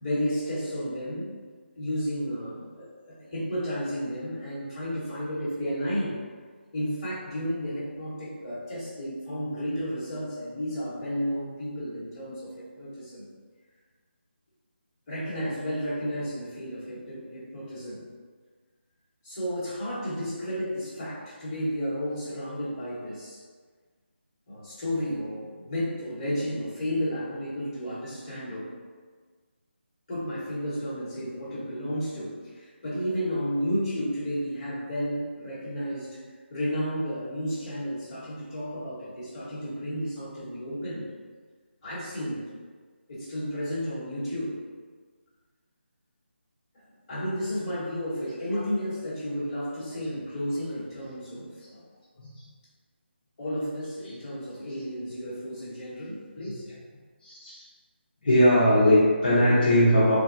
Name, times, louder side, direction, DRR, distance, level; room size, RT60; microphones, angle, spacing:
voice 1, 0.0-1.3 1.8-6.2 6.7-13.3 15.1-18.0 19.2-23.4 24.5-28.7 30.1-36.2 36.5-41.1 41.8-42.4 43.1-44.5 46.7-51.8 53.4-56.6, equal, 25° left, -11 dB, 1.1 m, -32 dB
voice 2, 57.2-57.6 58.2-60.1, equal, 45° left, -11 dB, 0.7 m, -20 dB
3.1 x 2.3 x 2.5 m, 1.5 s
figure-of-eight pair, 170°, 7 cm